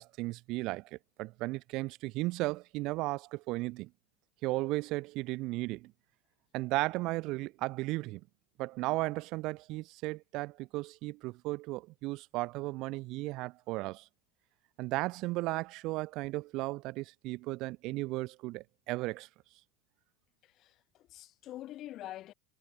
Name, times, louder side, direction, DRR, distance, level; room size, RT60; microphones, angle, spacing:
voice 1, 0.0-3.9 4.4-5.9 6.5-8.2 8.6-14.1 14.8-19.3, right 21 dB, 55° right, 1.4 m, -35 dB
voice 2, 20.4-22.3, left 14 dB, 45° left, 3.8 m, -46 dB
hypercardioid pair, 95°, 0 cm